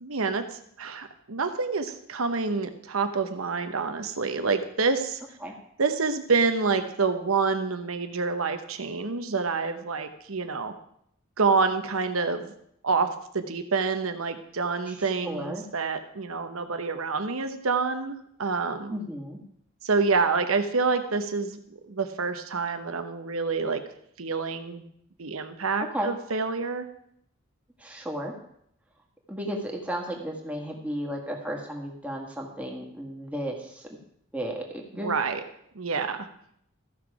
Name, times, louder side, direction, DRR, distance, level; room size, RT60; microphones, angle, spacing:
voice 1, 0.0-5.2 5.8-10.7 11.4-12.5 12.8-13.1 13.3-19.0 19.8-23.8 24.2-24.9 25.2-26.9 34.9-35.4 35.7-36.3, right 4 dB, 85° right, 8 dB, 1.0 m, -27 dB
voice 2, 15.2-15.6 18.9-19.4 25.9-26.1 27.8-28.3 29.3-34.0 34.3-35.1, equal, 5° right, 0 dB, 1.5 m, -34 dB
14.5 x 6.1 x 4.9 m, 0.72 s
head